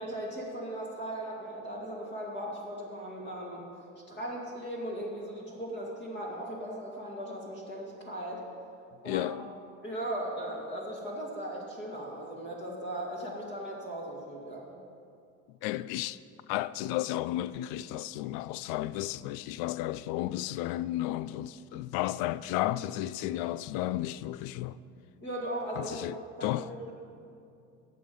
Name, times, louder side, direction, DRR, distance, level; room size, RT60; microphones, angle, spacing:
voice 1, 0.0-3.7 4.1-8.4 9.0-9.3 9.8-14.8 25.2-26.9, right 1 dB, 25° left, 2.3 m, -38 dB
voice 2, 9.1-9.5 15.6-16.2 16.5-24.8 25.8-26.7, left 14 dB, 60° left, 0.5 m, -33 dB
12.0 x 7.9 x 5.3 m
supercardioid pair, 95°, 41 cm